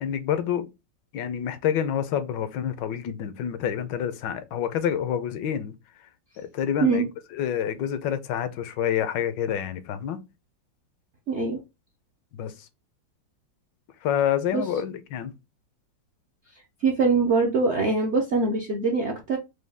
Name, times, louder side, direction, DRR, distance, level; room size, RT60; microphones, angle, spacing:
voice 1, 0.0-0.7 1.1-5.7 6.4-10.2 12.4-12.5 14.0-15.3, left 9 dB, 75° left, 1.3 m, -28 dB
voice 2, 11.3-11.6 14.5-14.6 16.8-19.4, right 3 dB, 60° right, 0.7 m, -23 dB
4.9 x 2.3 x 3.4 m
omnidirectional pair, 2.0 m